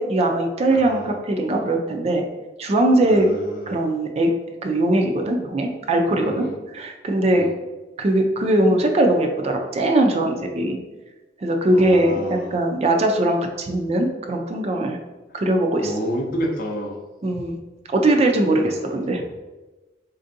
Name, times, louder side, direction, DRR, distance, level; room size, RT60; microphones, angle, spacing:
voice 1, 0.0-2.2 2.6-3.3 3.7-4.3 4.6-6.4 6.7-7.5 8.0-10.8 11.4-15.0 15.3-15.9 17.2-17.6 17.9-19.2, right 1 dB, 35° right, 3 dB, 0.4 m, -20 dB
voice 2, 0.7-1.1 3.0-3.7 6.2-6.6 7.3-7.5 11.7-12.5 15.3-15.4 15.8-17.0 18.6-18.9, equal, 50° left, 1 dB, 0.6 m, -30 dB
4.2 x 2.6 x 2.5 m, 1.2 s
head